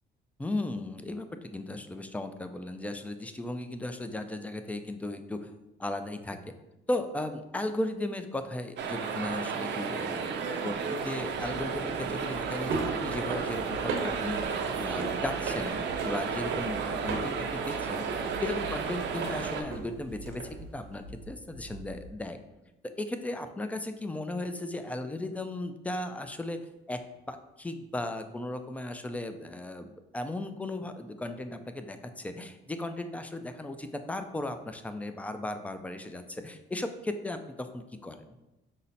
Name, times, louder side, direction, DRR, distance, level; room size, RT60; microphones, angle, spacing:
voice 1, 0.4-5.5 5.8-6.4 6.9-22.4 23.0-26.6 26.9-27.0 27.3-38.3, left 1 dB, 5° left, 8 dB, 0.3 m, -36 dB
sound 1, 8.8-19.6, right 5 dB, 65° right, 0.5 m, -33 dB
sound 2, 11.2-22.1, right 3 dB, 85° right, 0.9 m, -38 dB
5.5 x 2.1 x 4.0 m, 0.98 s
cardioid pair, 90°, 20 cm